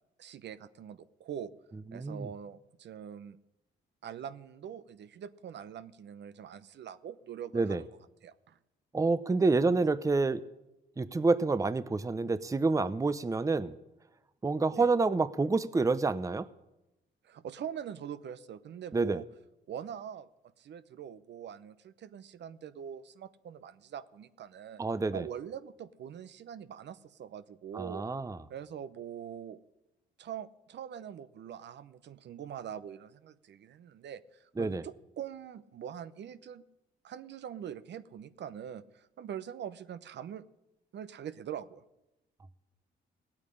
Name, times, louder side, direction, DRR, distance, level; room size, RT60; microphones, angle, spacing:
voice 1, 0.2-1.5 1.9-3.4 4.0-7.9 8.2-8.6 14.7-14.9 17.2-19.2 19.7-20.3 20.6-24.8 25.1-28.1 28.5-29.6 30.2-36.6 37.0-40.4 40.9-41.8, right 9 dB, 60° right, 14 dB, 0.8 m, -43 dB
voice 2, 1.9-2.3 7.5-7.8 8.9-10.4 11.0-13.8 14.4-16.5 18.9-19.2 24.8-25.2 27.7-28.4 34.6-34.8, right 3 dB, 15° right, 15 dB, 0.7 m, -28 dB
16.5 x 8.8 x 10.0 m, 0.94 s
cardioid pair, 90°, 20 cm